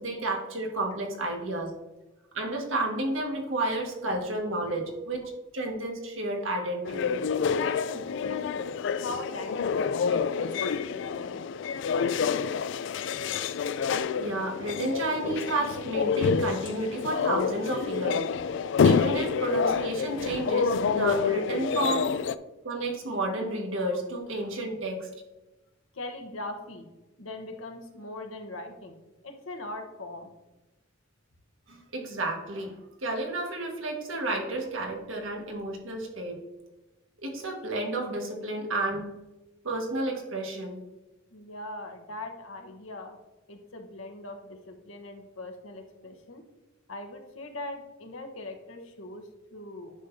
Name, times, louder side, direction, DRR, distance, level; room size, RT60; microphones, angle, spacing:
voice 1, 0.0-1.7 2.3-5.2 5.5-7.2 14.2-18.3 18.8-22.1 22.6-25.1 31.7-32.7 33.0-36.4 37.2-39.1 39.6-40.8, right 2 dB, 75° right, 1 dB, 1.6 m, -31 dB
sound 1, 6.9-22.4, left 6 dB, 60° left, 0.3 m, -28 dB
voice 2, 7.6-11.5 16.3-16.4 21.9-22.0 25.9-26.9 27.2-30.3 41.3-43.2 43.5-46.4 46.9-49.9, left 2 dB, 90° left, 3 dB, 1.1 m, -41 dB
9.7 x 6.4 x 2.7 m, 1.0 s
head